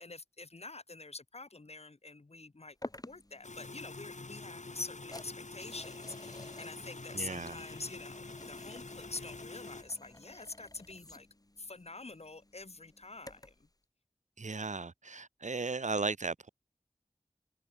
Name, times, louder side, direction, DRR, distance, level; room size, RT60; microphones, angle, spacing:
voice 1, 0.0-2.8 3.1-11.3 11.6-13.7, left 3 dB, 60° left, 1.7 m, -46 dB
sound 1, 2.8-13.7, left 1 dB, 30° left, 1.9 m, -52 dB
sound 2, 3.4-9.8, left 3 dB, 75° left, 3.6 m, -46 dB
voice 2, 7.1-7.6 14.4-16.5, right 4 dB, 75° right, 1.1 m, -36 dB
wide cardioid pair, 50°, 12 cm